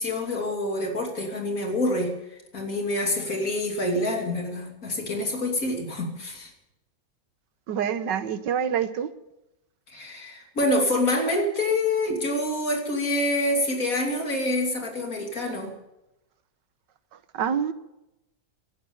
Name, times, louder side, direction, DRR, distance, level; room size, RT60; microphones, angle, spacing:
voice 1, 0.0-6.5 9.9-15.7, left 1 dB, 50° left, 2 dB, 3.4 m, -26 dB
voice 2, 7.7-9.1 17.3-17.7, right 8 dB, 85° right, 12 dB, 1.6 m, -26 dB
17.0 x 11.5 x 7.1 m, 0.92 s
omnidirectional pair, 1.9 m